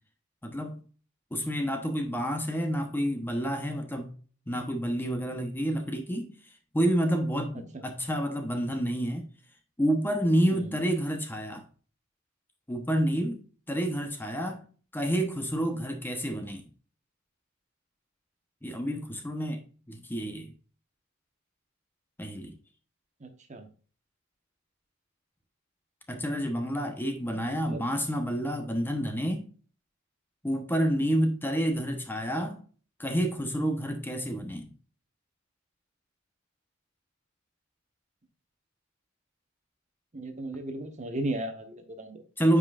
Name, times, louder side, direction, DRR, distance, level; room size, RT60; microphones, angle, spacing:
voice 1, 0.4-0.8 1.3-4.2 4.5-6.3 6.7-9.3 9.8-11.6 12.7-14.6 14.9-16.7 18.6-19.6 19.9-20.5 22.2-22.5 26.1-29.5 30.4-32.6 33.0-34.7 42.4-42.6, equal, 10° left, 0.9 m, -29 dB
voice 2, 23.2-23.7 27.5-27.8 40.1-42.2, right 1 dB, 35° right, 1.1 m, -36 dB
9.0 x 5.3 x 2.5 m
head